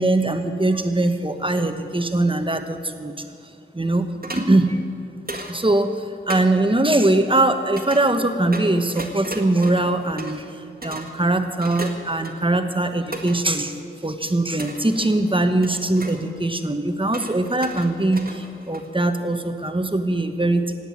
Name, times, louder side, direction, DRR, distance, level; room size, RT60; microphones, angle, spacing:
voice 1, 0.0-3.2 3.7-4.8 5.5-10.5 10.8-13.7 14.0-20.7, right 2 dB, 25° right, 7 dB, 1.2 m, -21 dB
sound 1, 4.2-4.5 5.3-5.6 6.3-6.4 7.8-8.0 8.5-10.5 10.8-11.1 11.6-12.5 13.1-13.4 14.6-15.3 15.6-16.2 17.1-19.0, right 1 dB, 45° right, 1.7 m, -35 dB
18.0 x 8.1 x 9.4 m, 2.4 s
wide cardioid pair, 55°, 21 cm